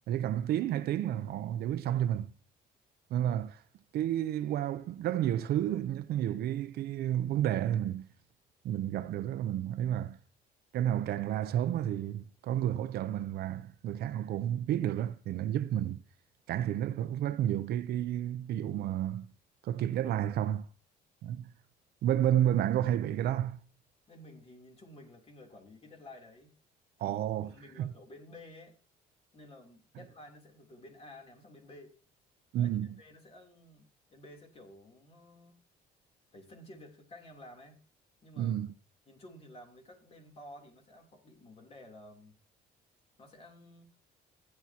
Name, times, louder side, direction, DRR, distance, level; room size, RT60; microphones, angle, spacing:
voice 1, 0.1-2.3 3.1-3.6 3.9-8.1 8.6-10.2 10.7-16.0 16.5-19.3 19.6-20.7 21.2-21.5 22.0-23.6 27.0-27.5 27.8-27.9 32.5-32.9 38.4-38.7, right 11 dB, 70° right, 0.7 m, -31 dB
voice 2, 24.1-26.5 27.0-27.2 27.5-28.8 29.3-31.9 32.6-35.6 36.3-37.8 38.2-38.6 39.1-42.3 43.2-43.9, left 1 dB, 35° left, 3.4 m, -53 dB
15.0 x 9.7 x 2.9 m
cardioid pair, 110°, 17 cm